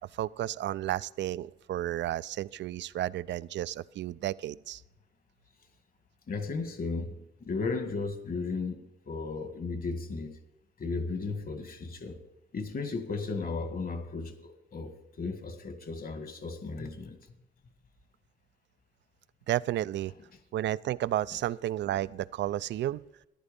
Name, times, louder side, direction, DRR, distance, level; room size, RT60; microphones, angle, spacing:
voice 1, 0.1-4.8 19.5-20.1 20.5-23.0, right 13 dB, 65° right, 0.5 m, -32 dB
voice 2, 6.3-7.1 7.4-10.3 10.8-12.2 12.5-17.2, left 4 dB, 45° left, 1.8 m, -35 dB
14.5 x 10.5 x 5.3 m
cardioid pair, 90°, 20 cm